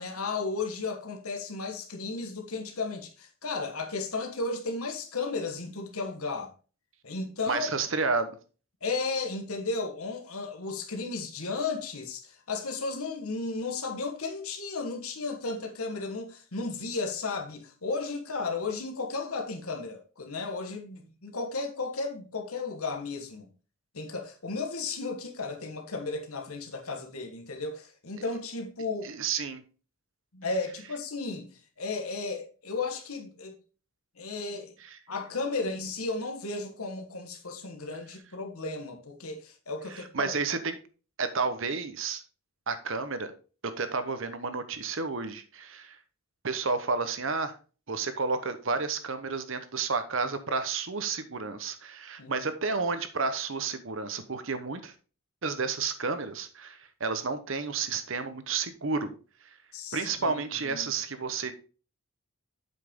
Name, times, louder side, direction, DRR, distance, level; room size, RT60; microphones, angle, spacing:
voice 1, 0.0-6.5 7.0-7.9 8.8-23.5 23.9-29.1 30.3-33.6 34.2-34.7 35.1-40.3 52.2-52.5 59.7-60.9, left 3 dB, 80° left, 1.4 m, -34 dB
voice 2, 7.5-8.4 29.0-29.6 34.9-35.0 39.9-40.8 41.2-42.2 42.7-43.3 43.8-46.0 46.4-47.6 47.9-54.9 55.4-59.1 59.9-61.5, right 4 dB, 65° right, 1.0 m, -31 dB
7.8 x 5.8 x 3.7 m
head